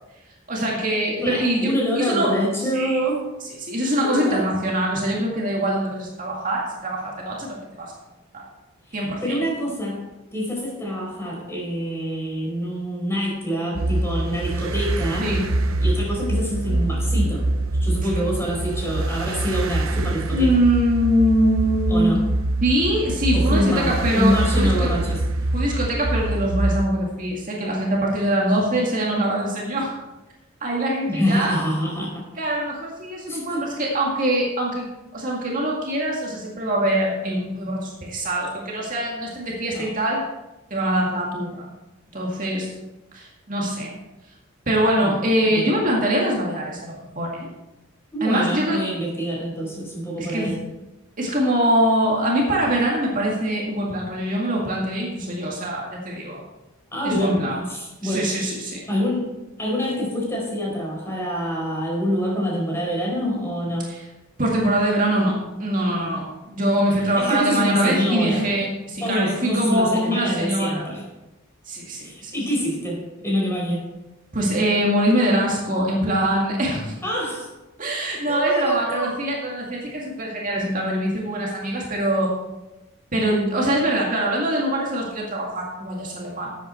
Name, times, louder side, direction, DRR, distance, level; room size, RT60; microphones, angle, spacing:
voice 1, 0.5-2.4 2.7-3.0 3.6-7.9 8.3-8.4 8.9-9.4 15.2-15.4 18.0-18.1 20.3-22.2 22.6-24.9 25.5-30.0 30.6-31.6 32.4-34.9 35.1-40.2 40.7-41.7 42.1-42.7 43.1-43.9 44.7-47.5 48.2-48.8 50.2-50.6 51.2-56.4 57.0-57.6 58.0-58.8 63.9-64.0 64.4-70.9 71.6-72.3 74.3-76.9 77.8-82.3 83.1-86.5, right 1 dB, 40° right, -3 dB, 2.0 m, -23 dB
voice 2, 1.2-3.3 3.9-4.5 8.9-15.3 15.8-17.5 17.8-20.5 21.9-22.2 23.3-25.2 31.1-32.3 33.3-33.7 39.7-39.9 45.0-45.2 45.4-45.7 48.1-50.6 56.9-57.4 57.7-58.3 58.9-63.9 67.1-68.4 69.0-71.0 72.0-73.9 77.0-77.5 78.3-79.1, equal, 10° left, -3 dB, 4.6 m, -26 dB
sound 1, 13.7-26.9, right 1 dB, 90° right, 0.8 m, -24 dB
13.0 x 8.4 x 4.4 m, 1.0 s
head